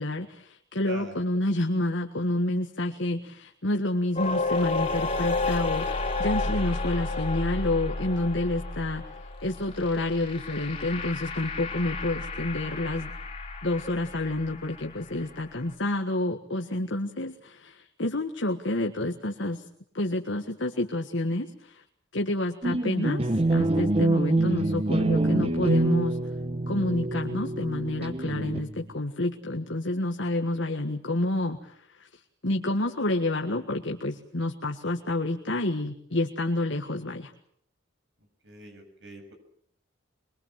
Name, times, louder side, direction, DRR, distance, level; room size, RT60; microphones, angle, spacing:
voice 1, 0.0-9.0 9.4-13.1 13.6-19.6 19.9-21.8 22.1-23.2 23.5-26.2 26.7-31.7 32.0-32.1 32.4-37.3, left 1 dB, 65° left, 3 dB, 1.7 m, -29 dB
voice 2, 0.8-1.2 38.4-39.3, right 2 dB, 65° right, 5 dB, 7.2 m, -43 dB
sound 1, 4.2-15.2, left 3 dB, 30° left, 3.8 m, -31 dB
sound 2, 22.6-28.9, right 2 dB, 30° right, 1.0 m, -25 dB
23.5 x 23.0 x 7.5 m, 0.67 s
head